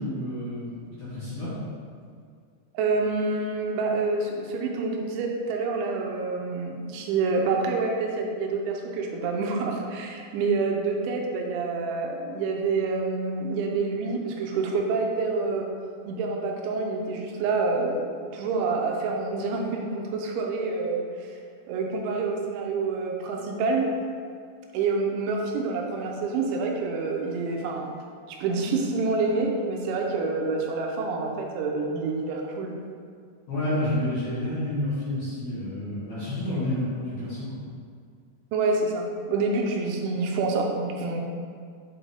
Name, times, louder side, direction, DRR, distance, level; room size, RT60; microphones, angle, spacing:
voice 1, 0.0-1.5 33.5-37.6, left 1 dB, 55° left, -11 dB, 2.2 m, -29 dB
voice 2, 2.7-15.7 16.1-21.3 21.7-23.9 24.7-27.9 28.3-32.7 38.5-41.2, right 3 dB, 85° right, 1 dB, 3.1 m, -27 dB
7.5 x 5.2 x 3.6 m, 2.2 s
omnidirectional pair, 5.4 m